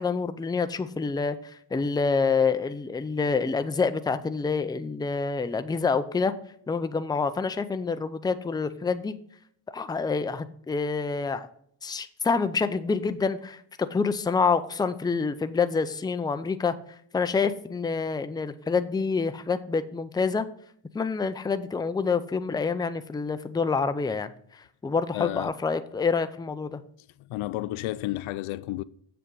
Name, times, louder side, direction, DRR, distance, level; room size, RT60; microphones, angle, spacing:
voice 1, 0.0-6.3 6.7-9.1 9.7-11.5 11.8-16.7 17.1-20.5 20.9-26.8, left 5 dB, 10° left, 0.5 m, -27 dB
voice 2, 25.1-25.5 27.2-28.8, left 16 dB, 85° left, 0.6 m, -32 dB
7.4 x 6.9 x 3.9 m
cardioid pair, 105°, 47 cm